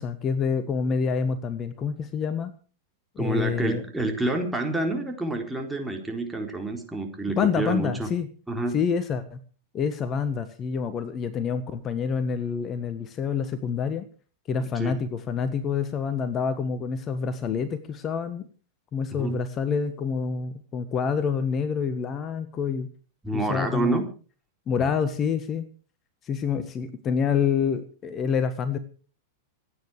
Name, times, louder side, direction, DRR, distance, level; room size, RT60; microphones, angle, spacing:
voice 1, 0.0-2.5 3.1-3.8 7.4-8.3 8.7-9.4 9.7-14.1 14.5-18.5 18.9-22.9 23.3-24.0 24.7-25.7 26.2-28.8, left 6 dB, 30° left, 13 dB, 1.5 m, -27 dB
voice 2, 3.2-8.1 8.5-8.8 14.6-15.0 19.1-19.4 23.2-24.0 24.8-24.9, right 2 dB, 5° right, 2 dB, 4.0 m, -28 dB
27.0 x 9.6 x 4.9 m, 0.39 s
figure-of-eight pair, 95°, 0 cm